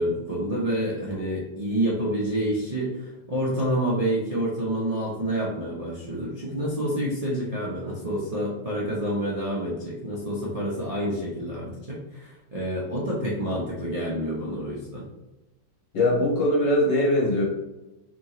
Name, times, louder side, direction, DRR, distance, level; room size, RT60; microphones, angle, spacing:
voice 1, 0.0-15.1, right 1 dB, 50° right, -6 dB, 0.4 m, -28 dB
voice 2, 15.9-17.4, left 1 dB, 65° left, -3 dB, 1.9 m, -21 dB
3.7 x 3.6 x 3.0 m, 1.0 s
omnidirectional pair, 2.0 m